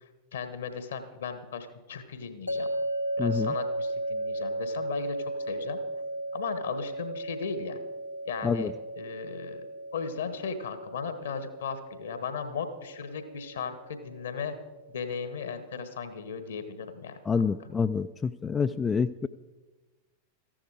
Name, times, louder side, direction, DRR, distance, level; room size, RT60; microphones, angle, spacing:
voice 1, 0.3-2.7 3.2-5.8 6.3-7.8 8.2-9.7 9.9-14.5 14.9-17.4, left 6 dB, 65° left, 10 dB, 1.3 m, -36 dB
sound 1, 2.5-15.6, right 1 dB, 85° left, 0.5 m, -36 dB
voice 2, 3.2-3.5 8.4-8.7 17.3-19.3, left 5 dB, 20° left, 11 dB, 0.3 m, -27 dB
14.5 x 11.5 x 4.9 m, 1.2 s
figure-of-eight pair, 90°, 0 cm